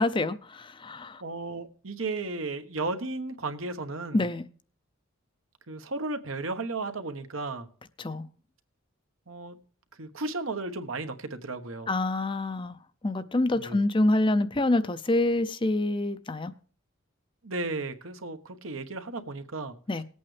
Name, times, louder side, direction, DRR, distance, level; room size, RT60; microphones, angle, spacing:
voice 1, 0.0-1.2 4.1-4.5 8.0-8.3 11.9-12.8 13.0-16.5 19.9-20.0, left 2 dB, 25° left, 12 dB, 0.5 m, -26 dB
voice 2, 1.2-4.2 5.7-7.7 9.3-9.6 9.9-11.9 13.5-13.8 17.4-19.7, right 3 dB, 75° right, 7 dB, 1.2 m, -34 dB
19.5 x 8.6 x 3.3 m, 0.43 s
head